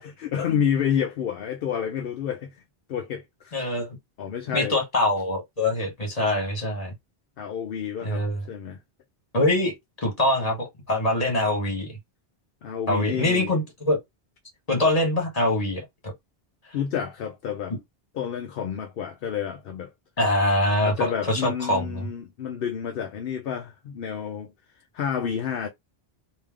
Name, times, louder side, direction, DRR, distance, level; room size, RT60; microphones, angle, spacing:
voice 1, 0.0-2.6 2.9-3.6 4.2-4.8 7.4-8.8 12.6-13.5 16.7-17.8 18.1-19.9 20.8-24.5 24.9-25.7, left 8 dB, 65° left, 0.8 m, -29 dB
voice 2, 3.5-4.0 4.5-6.9 8.0-8.4 9.3-9.7 10.0-12.0 12.9-14.0 14.7-15.8 20.2-22.1, left 1 dB, 40° left, 1.7 m, -24 dB
3.2 x 2.8 x 3.6 m
omnidirectional pair, 1.0 m